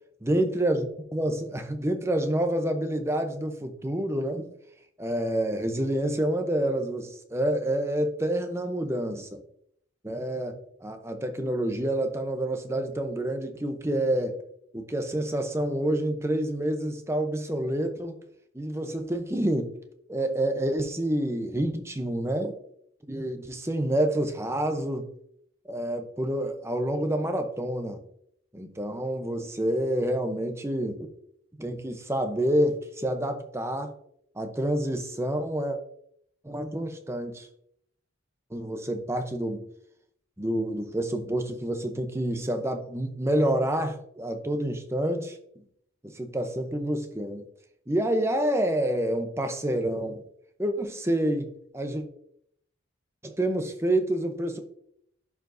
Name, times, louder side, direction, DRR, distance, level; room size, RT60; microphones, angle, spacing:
voice 1, 0.2-0.9 1.1-4.5 5.0-9.4 10.0-14.3 14.7-18.2 18.5-19.8 20.1-22.6 23.1-25.1 25.7-28.0 28.5-31.1 31.6-33.9 34.4-35.8 36.4-37.5 38.5-39.6 40.4-45.4 46.0-47.4 47.9-50.2 50.6-52.0 53.2-54.6, right 1 dB, 15° right, 6 dB, 0.7 m, -28 dB
11.0 x 4.7 x 2.6 m, 0.69 s
head